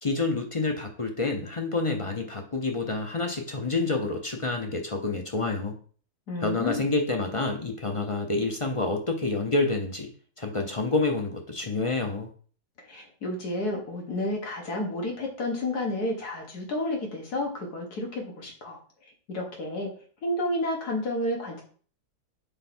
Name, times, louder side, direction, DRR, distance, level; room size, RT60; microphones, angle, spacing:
voice 1, 0.0-5.8 6.4-10.1 10.4-12.3, left 3 dB, 40° left, 3 dB, 0.4 m, -28 dB
voice 2, 6.3-6.8 12.8-18.8 19.3-19.9 20.2-21.6, left 1 dB, 90° left, 0 dB, 2.1 m, -31 dB
5.5 x 4.5 x 4.3 m, 0.43 s
omnidirectional pair, 1.6 m